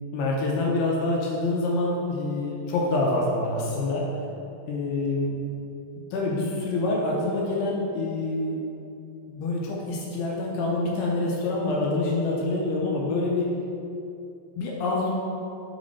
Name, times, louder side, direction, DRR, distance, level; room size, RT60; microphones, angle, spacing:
voice 1, 0.1-4.1 4.7-5.4 6.1-8.6 9.3-13.5 14.6-15.1, left 2 dB, 75° left, -3 dB, 2.6 m, -26 dB
8.5 x 4.1 x 4.1 m, 2.7 s
omnidirectional pair, 4.9 m